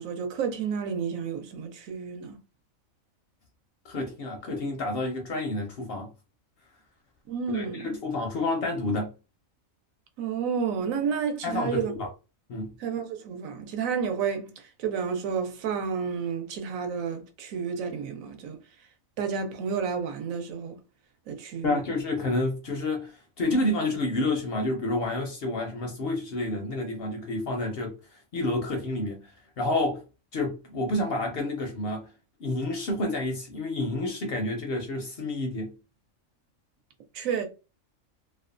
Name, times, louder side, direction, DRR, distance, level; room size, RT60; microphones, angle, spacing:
voice 1, 0.0-2.4 7.3-7.9 10.2-11.9 12.8-18.6 19.2-20.8 21.3-21.8 37.1-37.5, right 6 dB, 80° right, 1.0 m, -31 dB
voice 2, 3.9-6.1 7.5-9.1 11.4-12.1 12.5-12.7 21.6-28.0 28.3-29.3 29.6-30.0 30.3-32.1 32.4-35.7, left 2 dB, 65° left, 0.6 m, -29 dB
2.6 x 2.2 x 2.4 m
omnidirectional pair, 1.4 m